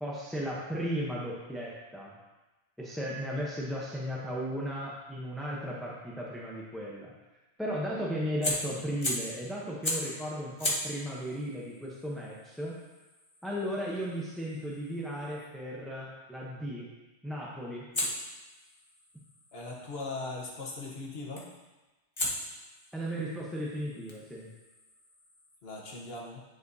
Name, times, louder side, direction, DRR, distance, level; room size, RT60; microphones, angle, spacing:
voice 1, 0.0-2.2 2.8-7.1 7.6-12.8 13.4-16.9 17.2-17.9 22.9-24.5, equal, ahead, -5 dB, 0.6 m, -35 dB
Fire, 8.4-9.4 9.8-10.2 10.6-15.5 17.9-20.0 21.4-21.7 22.2-25.6, left 1 dB, 25° left, 1.0 m, -38 dB
voice 2, 19.5-21.4 25.6-26.4, left 3 dB, 60° left, -2 dB, 1.3 m, -39 dB
9.6 x 4.7 x 2.7 m, 1.1 s
omnidirectional pair, 1.2 m